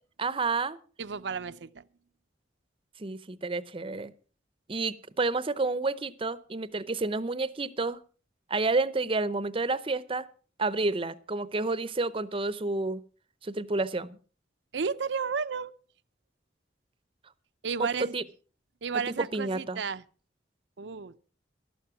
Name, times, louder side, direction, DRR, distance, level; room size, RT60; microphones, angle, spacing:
voice 1, 0.2-0.8 3.0-4.1 4.7-8.0 8.5-10.3 10.6-13.0 13.4-14.2 17.8-17.9 18.1-18.2 19.1-19.8, right 3 dB, 30° right, 0.7 m, -30 dB
voice 2, 1.0-1.9 14.7-15.7 17.6-18.1 18.8-20.0 20.8-21.2, right 5 dB, 85° right, 0.6 m, -32 dB
13.0 x 12.0 x 5.8 m
head